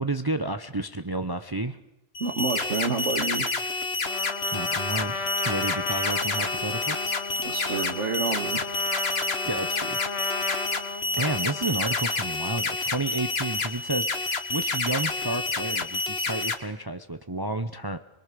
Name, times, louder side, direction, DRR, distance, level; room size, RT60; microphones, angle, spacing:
voice 1, 0.0-1.8 4.5-7.2 9.5-10.0 11.2-18.0, right 2 dB, 20° right, 9 dB, 0.8 m, -31 dB
sound 1, 2.1-16.5, left 3 dB, 60° left, 1.9 m, -29 dB
voice 2, 2.2-3.5 7.4-8.7, right 4 dB, 80° right, 3 dB, 2.1 m, -29 dB
Trumpet, 4.0-12.2, left 4 dB, 85° left, 1.7 m, -35 dB
24.5 x 22.5 x 6.8 m, 0.83 s
omnidirectional pair, 1.2 m